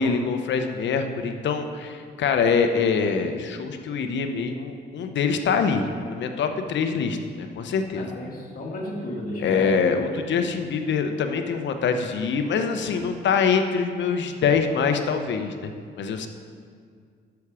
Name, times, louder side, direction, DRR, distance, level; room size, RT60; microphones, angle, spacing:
voice 1, 0.0-8.1 9.4-15.7 16.0-16.3, left 5 dB, 65° left, 7 dB, 0.9 m, -24 dB
voice 2, 7.9-9.8 10.4-10.5, left 1 dB, 45° left, -3 dB, 2.5 m, -33 dB
10.5 x 7.1 x 4.9 m, 2.1 s
cardioid pair, 90°, 20 cm